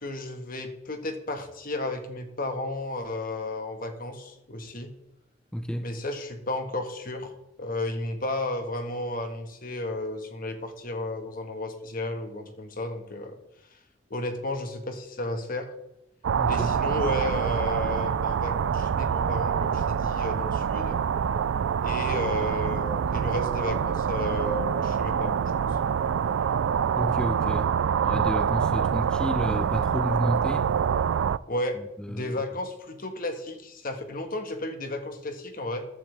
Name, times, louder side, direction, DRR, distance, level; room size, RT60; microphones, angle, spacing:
voice 1, 0.0-4.9 5.8-7.3 7.6-13.4 14.1-15.7 16.5-21.0 21.8-25.8 31.5-31.8 32.1-35.8, left 1 dB, 45° left, 1.6 m, -33 dB
voice 2, 5.5-5.9 16.4-16.8 27.0-27.8 28.0-30.7 31.8-32.3, equal, 5° left, 0.4 m, -31 dB
sound 1, 16.2-31.4, right 7 dB, 90° right, 0.4 m, -26 dB
14.5 x 10.5 x 3.4 m
head